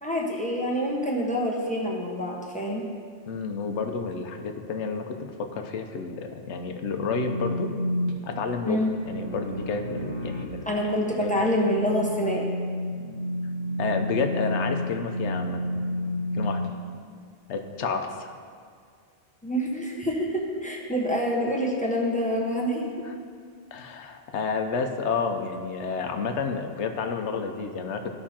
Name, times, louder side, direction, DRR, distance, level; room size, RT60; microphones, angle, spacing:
voice 1, 0.0-2.9 8.6-8.9 10.7-12.5 19.4-23.0, equal, 5° left, -3 dB, 1.0 m, -26 dB
voice 2, 3.3-7.7 8.2-10.7 11.2-11.3 13.8-15.6 16.3-16.6 17.5-18.3 23.7-28.1, left 5 dB, 80° left, 5 dB, 1.0 m, -30 dB
sound 1, 7.0-16.7, left 1 dB, 60° right, 1.4 m, -31 dB
14.0 x 5.5 x 2.9 m, 2.1 s
omnidirectional pair, 1.2 m